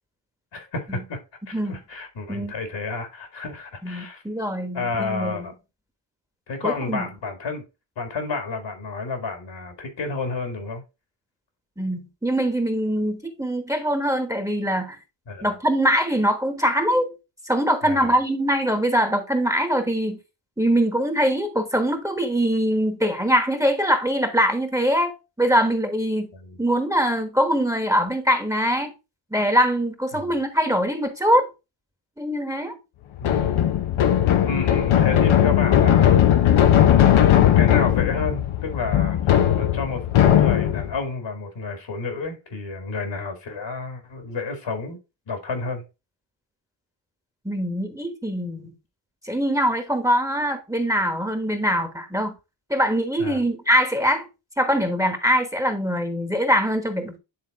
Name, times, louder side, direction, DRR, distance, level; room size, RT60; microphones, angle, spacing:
voice 1, 0.5-1.2 1.5-4.2 4.7-5.5 6.5-7.6 8.0-10.8 15.3-15.5 17.8-18.2 26.3-26.6 30.1-30.4 33.2-33.6 34.4-36.5 36.7-45.0 45.3-45.8 53.2-53.4, left 4 dB, 65° left, 2.1 m, -31 dB
voice 2, 3.8-5.5 6.6-7.1 11.8-15.0 15.4-17.1 17.5-20.2 20.6-26.3 26.6-28.9 29.3-31.5 32.2-32.8 47.4-48.7 49.2-52.3 52.7-54.3 54.6-57.2, equal, 5° right, 1.2 m, -23 dB
sound 1, 33.2-41.0, left 10 dB, 80° left, 0.9 m, -18 dB
9.6 x 3.6 x 3.6 m
cardioid pair, 70°, 48 cm